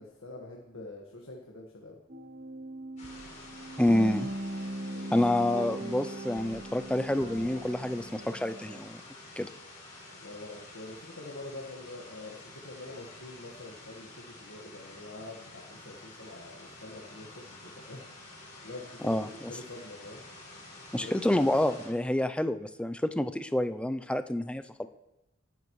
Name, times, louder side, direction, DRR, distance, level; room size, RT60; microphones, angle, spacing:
voice 1, 0.0-2.0 4.8-5.4 10.2-18.0 18.6-20.2 20.9-21.1, left 2 dB, 80° left, -1 dB, 1.6 m, -45 dB
sound 1, 2.1-8.8, right 1 dB, 40° right, 0.8 m, -39 dB
sound 2, 3.0-21.9, left 2 dB, 35° left, 5.5 m, -49 dB
voice 2, 3.8-4.3 5.1-9.0 9.4-9.5 19.0-19.5 20.9-24.9, left 1 dB, 5° left, 9 dB, 0.4 m, -28 dB
19.0 x 10.5 x 3.2 m, 0.94 s
head